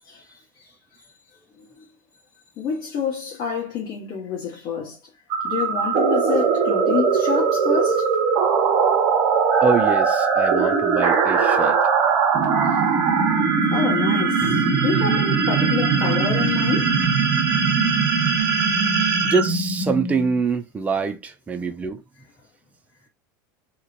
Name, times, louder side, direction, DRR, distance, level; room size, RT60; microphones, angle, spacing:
voice 1, 2.6-5.0 5.4-8.1 13.7-14.5 14.8-16.9 19.0-19.1, left 6 dB, 45° left, 1.2 m, -27 dB
sound 1, 5.3-20.4, right 5 dB, 40° right, 1.2 m, -20 dB
voice 2, 9.6-11.8 14.2-14.3 19.2-22.0, right 5 dB, 15° right, 0.5 m, -24 dB
3.0 x 2.9 x 2.5 m
supercardioid pair, 145°, 11 cm